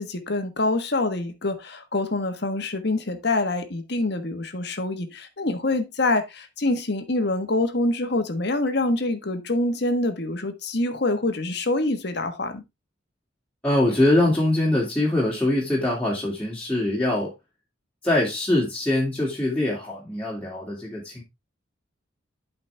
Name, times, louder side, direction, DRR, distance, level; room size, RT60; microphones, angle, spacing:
voice 1, 0.0-12.6, left 2 dB, 55° left, 1.4 m, -25 dB
voice 2, 13.6-17.3 18.0-21.2, left 1 dB, 5° left, 2.6 m, -23 dB
11.5 x 5.2 x 3.4 m
head